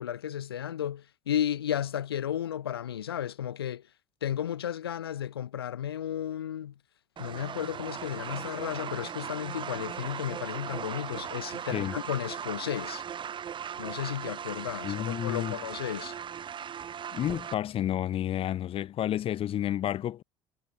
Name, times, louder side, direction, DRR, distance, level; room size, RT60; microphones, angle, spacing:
voice 1, 0.0-3.8 4.2-6.7 7.2-13.0 13.8-16.2, left 10 dB, 85° left, 2.2 m, -33 dB
sound 1, 7.2-17.5, right 8 dB, 40° right, 2.4 m, -38 dB
voice 2, 14.8-15.6 17.1-20.2, left 11 dB, 50° left, 1.9 m, -30 dB
hypercardioid pair, 60°, 12 cm